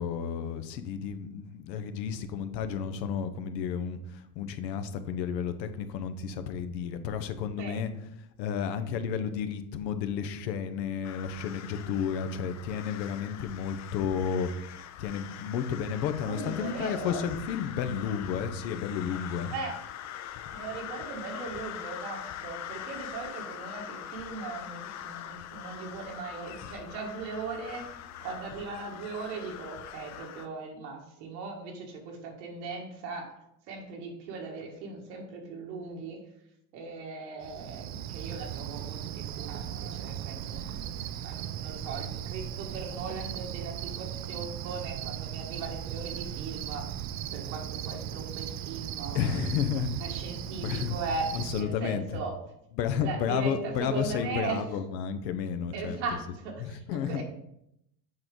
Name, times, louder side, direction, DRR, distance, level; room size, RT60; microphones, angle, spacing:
voice 1, 0.0-7.9 8.4-14.5 15.0-19.5 49.1-49.9 50.4-51.0 51.3-52.2 52.7-57.2, left 7 dB, 85° left, 9 dB, 0.9 m, -32 dB
voice 2, 7.6-7.9 16.2-17.2 19.5-19.8 20.5-27.9 28.2-33.3 33.7-36.2 36.7-47.0 47.3-49.5 50.0-52.4 53.0-54.6 55.7-57.2, right 4 dB, 85° right, 1 dB, 1.9 m, -38 dB
sound 1, 11.0-30.5, left 10 dB, 35° left, 0.4 m, -42 dB
Cricket, 37.4-51.6, right 10 dB, 40° right, 0.4 m, -37 dB
7.7 x 4.6 x 3.8 m, 0.79 s
supercardioid pair, 90°, 50 cm